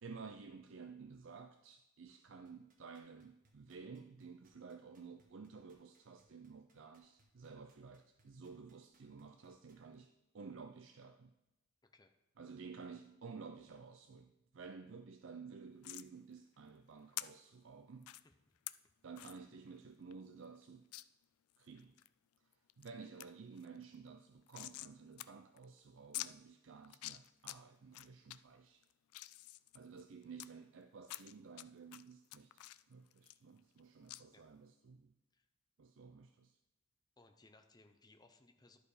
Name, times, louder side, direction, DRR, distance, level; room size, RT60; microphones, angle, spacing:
voice 1, 0.0-11.3 12.4-18.1 19.0-20.9 21.6-21.9 22.8-28.8 29.7-32.6 32.9-35.1 35.8-36.6, right 5 dB, 60° right, 7 dB, 0.4 m, -53 dB
sound 1, 2.4-10.0 10.4-10.5, right 2 dB, 40° right, 1.2 m, -73 dB
voice 2, 11.8-12.1 18.2-18.3 34.3-34.5 35.3-35.5 37.2-38.8, left 2 dB, 20° left, 6 dB, 0.6 m, -65 dB
sound 2, 15.8-16.1 17.2-17.3 18.0-18.2 18.7-18.8 19.2-19.4 19.8-19.9 20.1-20.2 20.9-21.0 21.5-22.1 22.5-22.9 23.2-23.3 23.6-24.9 25.2-25.3 25.6-25.7 26.1-26.3 26.8-27.6 27.9-28.4 28.8-30.5 31.0-31.6 31.9-33.8 34.1-34.2, left 16 dB, 85° left, 0.3 m, -47 dB
11.0 x 4.8 x 4.9 m, 0.96 s
head